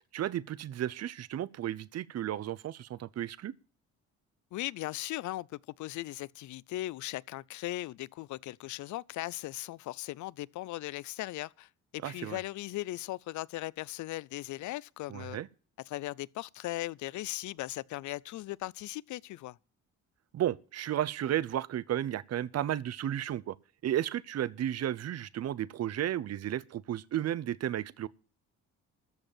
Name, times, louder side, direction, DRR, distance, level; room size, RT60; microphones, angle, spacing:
voice 1, 0.1-3.5 12.0-12.4 15.1-15.5 20.3-23.6 23.8-28.1, right 11 dB, 55° right, 0.8 m, -33 dB
voice 2, 4.5-15.4 15.9-19.6, left 16 dB, 75° left, 0.5 m, -38 dB
13.5 x 5.3 x 8.9 m
cardioid pair, 90°, 30 cm